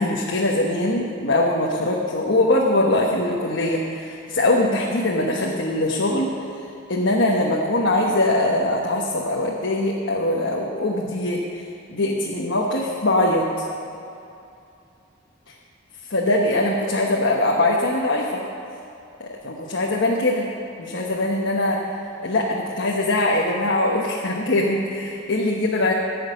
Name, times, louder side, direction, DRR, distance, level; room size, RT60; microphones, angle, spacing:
voice 1, 0.0-6.3 6.9-13.7 16.1-18.4 19.2-20.5 20.8-21.8 22.2-25.9, left 1 dB, 60° left, -2 dB, 1.2 m, -22 dB
15.5 x 6.5 x 9.4 m, 2.7 s
head